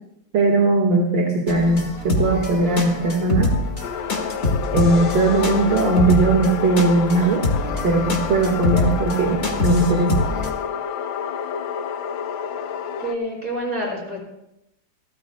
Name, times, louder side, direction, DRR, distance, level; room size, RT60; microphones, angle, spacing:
voice 1, 0.3-3.5 4.7-7.4 7.8-10.1, right 2 dB, 75° right, 0 dB, 2.3 m, -19 dB
sound 1, 1.5-10.5, left 2 dB, 35° left, 1.9 m, -25 dB
sound 2, 3.8-13.1, left 9 dB, 85° left, 1.5 m, -29 dB
voice 2, 13.0-14.2, right 1 dB, 45° right, -3 dB, 5.0 m, -27 dB
28.0 x 13.0 x 2.2 m, 0.83 s
omnidirectional pair, 2.0 m